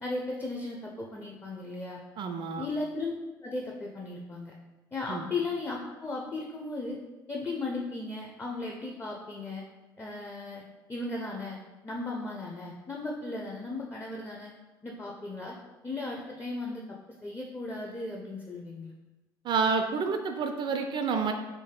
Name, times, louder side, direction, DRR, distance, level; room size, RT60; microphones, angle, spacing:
voice 1, 0.0-2.0 2.6-3.1 3.4-4.5 4.9-7.0 7.3-9.6 10.0-10.6 10.9-11.6 11.8-14.5 14.8-15.6 15.8-16.8 17.2-18.9, left 2 dB, 20° left, -1 dB, 0.5 m, -36 dB
voice 2, 2.2-2.7 5.1-5.3 19.4-21.3, right 5 dB, 45° right, 6 dB, 0.4 m, -29 dB
3.1 x 2.7 x 3.6 m, 1.2 s
hypercardioid pair, 60°, 12 cm